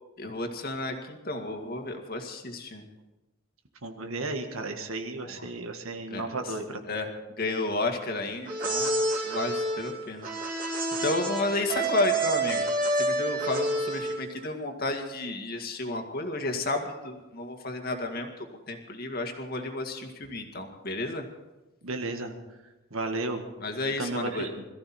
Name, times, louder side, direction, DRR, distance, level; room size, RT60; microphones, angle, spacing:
voice 1, 0.2-2.9 6.1-6.2 6.9-7.1 7.4-10.3 10.5-10.7 11.0-21.2 23.6-24.5, left 2 dB, 45° left, 4 dB, 2.1 m, -32 dB
voice 2, 3.8-6.8 21.8-22.3 22.9-23.4 24.0-24.6, right 2 dB, 80° right, 5 dB, 1.7 m, -33 dB
sound 1, 8.4-14.3, right 2 dB, 40° right, 3.7 m, -28 dB
22.0 x 14.5 x 4.4 m, 1.1 s
head